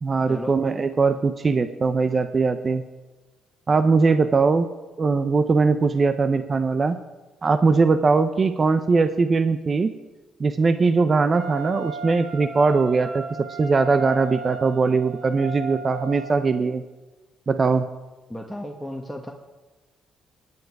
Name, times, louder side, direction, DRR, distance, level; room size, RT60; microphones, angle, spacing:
voice 1, 0.0-2.8 3.7-4.7 5.0-7.0 7.4-9.9 10.4-16.8 17.5-17.9, right 4 dB, 40° right, 10 dB, 0.8 m, -20 dB
Wind instrument woodwind instrument, 11.3-16.6, right 3 dB, 65° right, 3.6 m, -36 dB
voice 2, 18.3-19.3, left 1 dB, 5° left, 0 dB, 1.7 m, -34 dB
19.5 x 9.8 x 4.8 m, 1.2 s
supercardioid pair, 60°, 0 cm